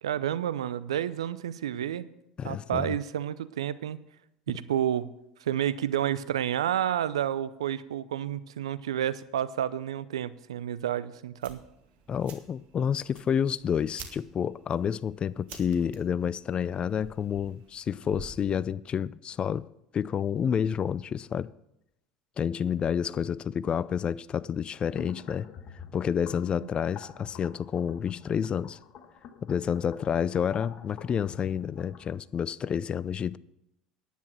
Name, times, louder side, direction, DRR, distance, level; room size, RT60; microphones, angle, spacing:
voice 1, 0.0-2.1 2.4-4.0 4.5-5.1 5.4-11.6 26.6-26.7, right 10 dB, 80° right, 0.5 m, -30 dB
voice 2, 2.4-2.9 12.1-19.7 19.9-21.5 22.4-25.5 25.9-28.8 29.4-33.4, left 8 dB, 35° left, 0.4 m, -29 dB
sound 1, 11.4-18.5, right 6 dB, 50° right, 2.1 m, -50 dB
sound 2, 24.9-32.1, left 7 dB, 50° left, 1.5 m, -48 dB
10.5 x 9.3 x 6.2 m
hypercardioid pair, 70°, 3 cm